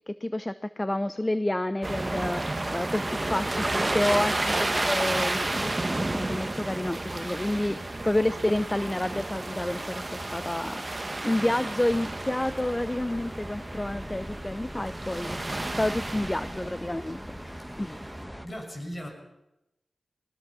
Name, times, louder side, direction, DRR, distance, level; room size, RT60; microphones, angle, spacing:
voice 1, 0.1-10.8 11.2-18.0, left 1 dB, 20° left, 13 dB, 0.7 m, -29 dB
sound 1, 1.8-17.2 17.9-18.1, right 2 dB, 30° right, 1.2 m, -31 dB
sound 2, 11.9-18.5, equal, ahead, 1.5 m, -40 dB
voice 2, 17.8-18.1 18.4-19.1, equal, 40° left, 2 dB, 6.9 m, -39 dB
21.5 x 20.0 x 6.2 m, 0.92 s
cardioid pair, 50°, 0 cm